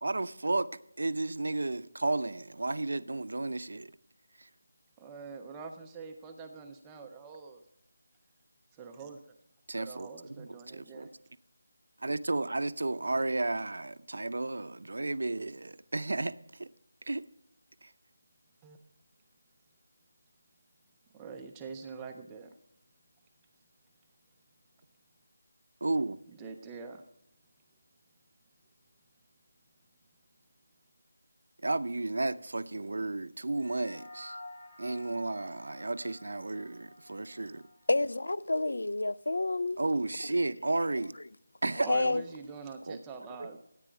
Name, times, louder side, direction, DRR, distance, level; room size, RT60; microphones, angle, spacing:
voice 1, 0.0-0.7 1.0-3.9 4.4-4.5 9.7-11.1 12.0-16.7 17.1-17.3 17.8-17.9 25.8-26.2 31.6-34.4 34.8-37.6 39.8-41.1 41.6-41.9 42.9-43.0 43.4-43.5, right 2 dB, 70° right, 0.5 m, -33 dB
voice 2, 5.0-7.6 8.8-9.2 9.8-11.1 18.6-18.8 21.1-22.5 26.3-27.0 41.8-43.6, right 5 dB, 10° right, 0.4 m, -44 dB
sound 1, 33.6-38.2, left 2 dB, 50° left, 2.6 m, -50 dB
voice 3, 37.9-39.8 41.9-42.2, left 2 dB, 80° left, 0.4 m, -29 dB
14.0 x 9.1 x 4.9 m
figure-of-eight pair, 175°, 0 cm